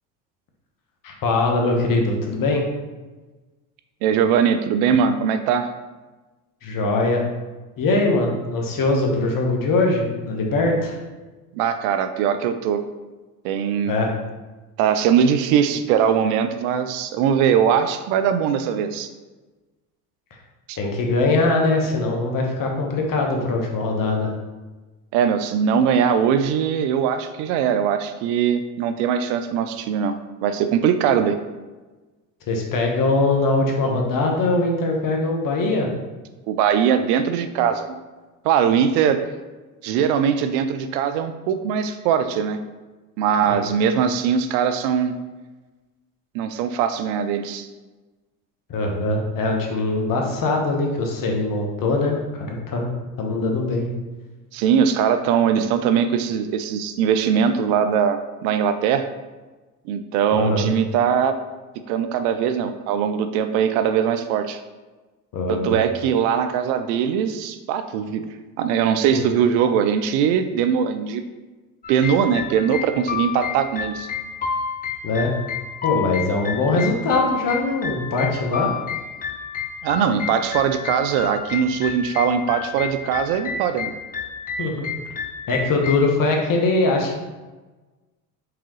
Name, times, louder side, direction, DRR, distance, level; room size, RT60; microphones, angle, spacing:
voice 1, 1.0-2.7 6.6-7.3 7.8-11.0 13.8-14.1 20.8-24.3 32.5-35.9 43.5-43.7 48.7-52.9 53.2-53.9 60.3-60.7 65.3-65.7 69.1-69.2 75.0-75.4 75.8-78.7 84.6-84.9 85.5-87.2, left 2 dB, 45° left, 1 dB, 1.2 m, -22 dB
voice 2, 4.0-5.7 11.5-12.8 13.4-14.0 14.8-19.1 20.7-20.8 25.1-30.1 30.4-31.4 36.5-38.0 38.4-39.2 39.8-42.6 43.2-45.1 46.3-47.7 54.5-59.1 59.9-61.3 61.9-64.6 65.5-68.2 68.6-71.2 71.9-74.1 79.8-83.9, right 8 dB, 70° right, 9 dB, 0.6 m, -21 dB
sound 1, 71.8-86.0, left 6 dB, 20° left, 0.4 m, -30 dB
4.8 x 3.5 x 3.1 m, 1.2 s
hypercardioid pair, 80°, 47 cm